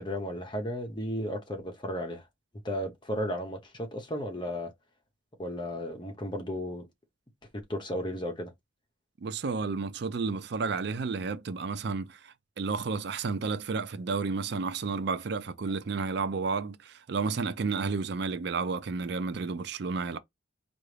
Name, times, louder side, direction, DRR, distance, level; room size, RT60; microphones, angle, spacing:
voice 1, 0.0-2.2 2.6-4.7 5.4-6.9 7.5-8.5, equal, 25° left, 0.9 m, -34 dB
voice 2, 9.2-20.2, right 4 dB, 60° right, 0.4 m, -31 dB
4.6 x 2.6 x 3.3 m
head